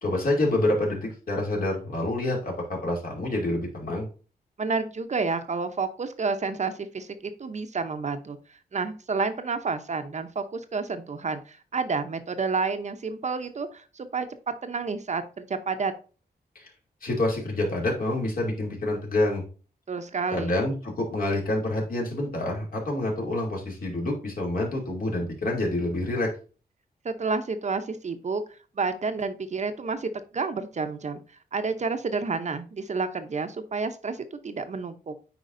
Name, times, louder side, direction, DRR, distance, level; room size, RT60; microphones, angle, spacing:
voice 1, 0.0-2.5 2.8-4.1 16.5-16.7 17.0-19.4 20.3-26.3, left 1 dB, 60° left, -1 dB, 2.6 m, -27 dB
voice 2, 4.6-14.3 14.6-15.9 19.9-20.6 27.0-28.4 28.8-31.2 31.5-35.1, right 4 dB, 45° right, 9 dB, 0.7 m, -30 dB
9.3 x 4.6 x 2.6 m, 0.36 s
wide cardioid pair, 110°, 17 cm